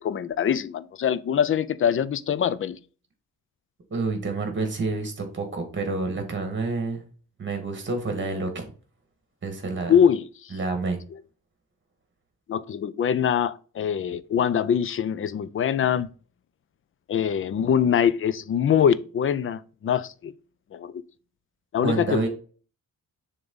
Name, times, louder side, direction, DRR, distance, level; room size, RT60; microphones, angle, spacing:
voice 1, 0.0-2.8 9.9-10.5 12.5-16.1 17.1-20.3 20.7-21.0 21.7-22.3, left 8 dB, 40° left, 0.4 m, -23 dB
voice 2, 3.9-7.0 7.4-8.6 9.4-9.9 10.5-11.0 21.8-22.3, right 3 dB, 35° right, 1.9 m, -28 dB
6.8 x 3.7 x 4.0 m
wide cardioid pair, 155°, 34 cm